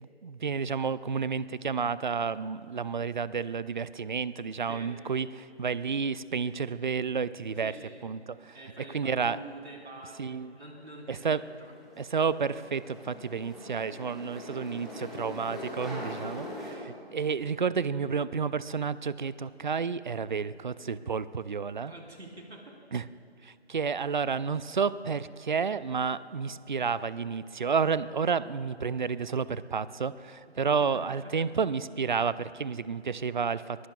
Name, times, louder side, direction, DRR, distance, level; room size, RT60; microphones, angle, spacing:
voice 1, 0.0-7.7 8.0-8.6 8.9-9.4 10.2-10.6 11.1-11.4 12.0-21.9 22.9-23.1 23.4-33.9, right 5 dB, 45° right, 17 dB, 0.4 m, -31 dB
voice 2, 7.6-8.0 8.5-11.8 21.9-22.7, right 1 dB, 75° right, 0 dB, 4.1 m, -46 dB
sound 1, 11.4-16.7, left 1 dB, ahead, 1.6 m, -42 dB
22.5 x 21.0 x 2.4 m, 2.8 s
figure-of-eight pair, 150°, 33 cm